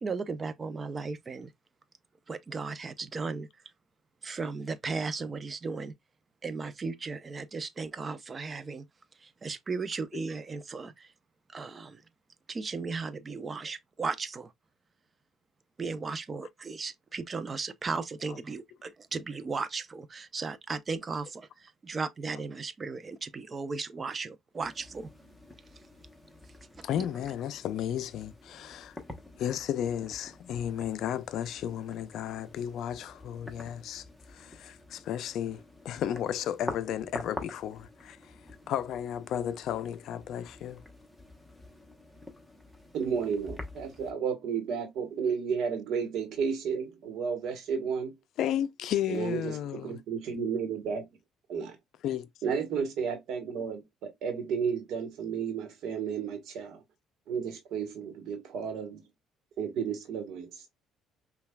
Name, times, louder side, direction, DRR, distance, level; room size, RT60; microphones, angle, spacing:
voice 1, 0.0-1.5 2.3-3.5 4.2-5.9 6.4-8.8 9.2-11.1 11.5-12.0 12.5-14.5 15.8-25.1 26.8-26.9, right 4 dB, 30° right, 0.5 m, -36 dB
sound 1, 24.6-44.1, left 1 dB, 5° left, 1.0 m, -47 dB
voice 2, 26.8-29.0 29.4-38.3 38.7-40.8 48.4-50.0 52.0-52.3, left 10 dB, 65° left, 0.4 m, -33 dB
voice 3, 42.9-48.1 49.1-51.0 51.5-51.8 52.4-56.8 57.3-59.0 59.6-60.6, right 6 dB, 70° right, 1.1 m, -32 dB
5.4 x 2.3 x 2.2 m
cardioid pair, 95°, 0 cm